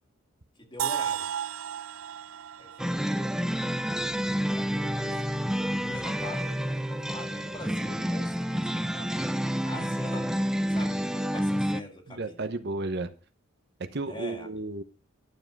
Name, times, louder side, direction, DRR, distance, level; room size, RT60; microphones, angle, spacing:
voice 1, 0.6-1.3 2.6-4.1 4.4-9.2 9.4-12.5 14.0-14.5, left 1 dB, 25° left, 2.0 m, -43 dB
sound 1, 0.8-4.7, right 9 dB, 75° right, 0.4 m, -35 dB
sound 2, 2.8-11.8, equal, 5° right, 0.4 m, -29 dB
voice 2, 12.2-13.1 13.9-14.8, right 2 dB, 55° right, 1.0 m, -32 dB
11.5 x 7.6 x 4.7 m
head